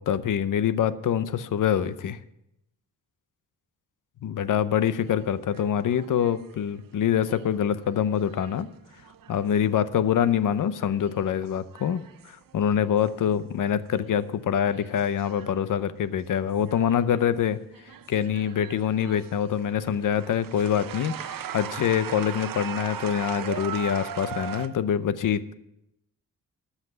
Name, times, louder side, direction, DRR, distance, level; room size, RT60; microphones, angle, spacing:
voice 1, 0.0-2.2 4.2-8.7 9.3-17.6 18.1-25.5, left 9 dB, 65° left, 14 dB, 0.7 m, -25 dB
sound 1, 4.9-10.2 10.6-13.4 13.7-14.2 14.7-17.4 17.7-24.7, right 9 dB, 75° right, 0.8 m, -40 dB
13.5 x 5.8 x 7.9 m, 0.82 s
wide cardioid pair, 125°, 34 cm